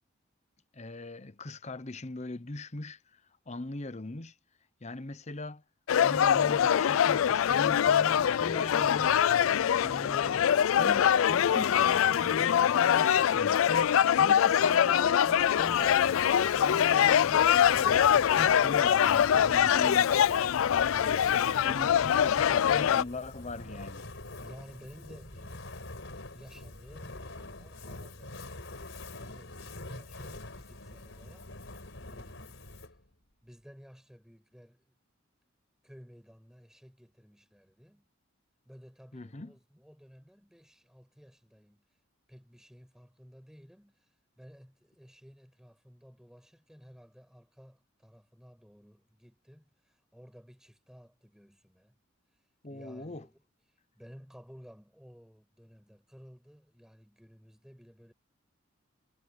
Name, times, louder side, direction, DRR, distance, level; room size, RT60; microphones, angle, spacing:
voice 1, 0.7-3.2 3.5-4.3 4.8-5.6 6.0-9.2 9.8-20.2 20.7-24.1 39.1-39.5 52.6-53.3, left 2 dB, 35° left, 0.9 m, -41 dB
sound 1, 5.9-23.0, left 9 dB, 85° left, 0.4 m, -24 dB
Fire, 15.1-33.1, left 2 dB, 70° left, 4.5 m, -45 dB
voice 2, 24.4-28.4 28.7-32.6 33.4-35.0 35.8-38.1 38.6-42.0 42.3-52.0 52.3-53.4 53.7-58.1, equal, 5° right, 7.3 m, -55 dB
head